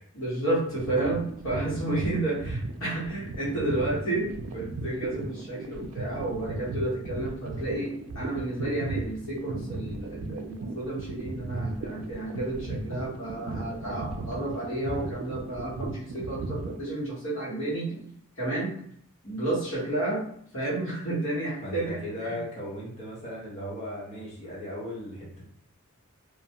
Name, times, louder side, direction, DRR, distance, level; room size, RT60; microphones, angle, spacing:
voice 1, 0.1-18.0 18.4-18.7 19.2-20.2 20.5-22.4, right 2 dB, 60° left, -7 dB, 1.2 m, -31 dB
sound 1, 0.7-16.8, right 2 dB, 75° right, 0.3 m, -36 dB
voice 2, 21.6-25.4, left 1 dB, 30° left, -5 dB, 0.8 m, -37 dB
2.4 x 2.2 x 2.8 m, 0.64 s
head